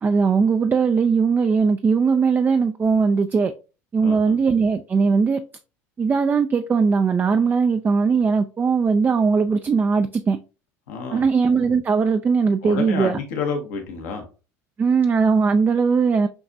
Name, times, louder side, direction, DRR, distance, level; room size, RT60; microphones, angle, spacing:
voice 1, 0.0-3.5 3.9-5.4 6.0-10.4 11.1-13.2 14.8-16.3, right 5 dB, 25° right, 0.3 m, -19 dB
voice 2, 4.0-4.4 10.9-11.3 12.6-14.2, left 5 dB, 80° left, 1.1 m, -29 dB
6.0 x 2.5 x 2.6 m
hypercardioid pair, 85°, 8 cm